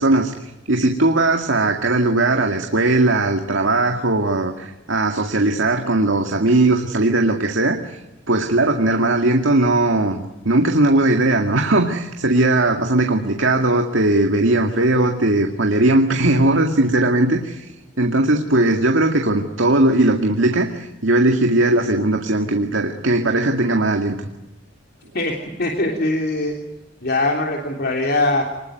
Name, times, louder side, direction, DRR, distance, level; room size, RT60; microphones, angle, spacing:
voice 1, 0.0-8.0 8.3-24.2, right 2 dB, 80° right, 4 dB, 2.1 m, -18 dB
voice 2, 25.1-26.5 27.0-28.4, left 2 dB, 55° left, 1 dB, 3.3 m, -21 dB
26.0 x 20.5 x 9.3 m, 1.0 s
head